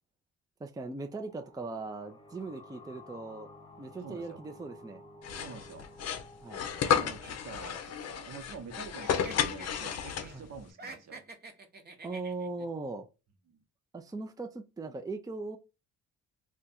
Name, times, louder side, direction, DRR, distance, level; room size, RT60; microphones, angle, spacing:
voice 1, 0.6-3.5 3.8-5.0 6.4-6.7 10.3-10.4 12.0-13.1 13.9-15.6, right 3 dB, 10° right, 0.5 m, -39 dB
sound 1, 0.9-8.3, left 2 dB, 20° left, 1.1 m, -54 dB
voice 2, 4.0-4.4 5.3-5.9 6.7-11.2 13.5-13.6, right 5 dB, 60° right, 1.0 m, -47 dB
sound 2, 5.2-10.6, left 8 dB, 55° left, 0.6 m, -32 dB
sound 3, 6.8-8.7 9.0-10.4 10.7-12.7, right 3 dB, 35° right, 0.9 m, -49 dB
2.5 x 2.4 x 4.0 m
cardioid pair, 90°, 30 cm